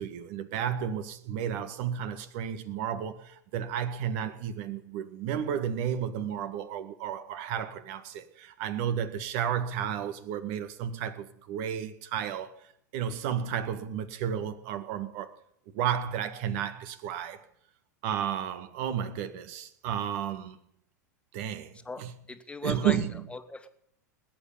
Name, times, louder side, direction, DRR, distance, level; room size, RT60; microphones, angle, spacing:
voice 1, 0.0-12.6 12.9-15.3 15.7-17.4 18.0-20.6 21.3-22.1 22.6-23.1, right 9 dB, 55° right, 1.9 m, -32 dB
voice 2, 21.9-23.7, left 3 dB, 10° left, 1.8 m, -39 dB
20.0 x 9.2 x 7.3 m
hypercardioid pair, 90°, 10 cm